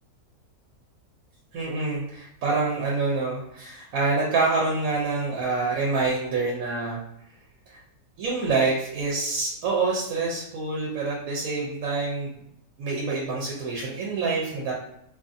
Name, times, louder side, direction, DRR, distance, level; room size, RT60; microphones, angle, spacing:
voice 1, 1.5-7.0 7.7-7.8 8.2-12.3 12.8-14.7, right 3 dB, 75° right, -3 dB, 1.0 m, -26 dB
2.5 x 2.5 x 2.5 m, 0.76 s
omnidirectional pair, 1.5 m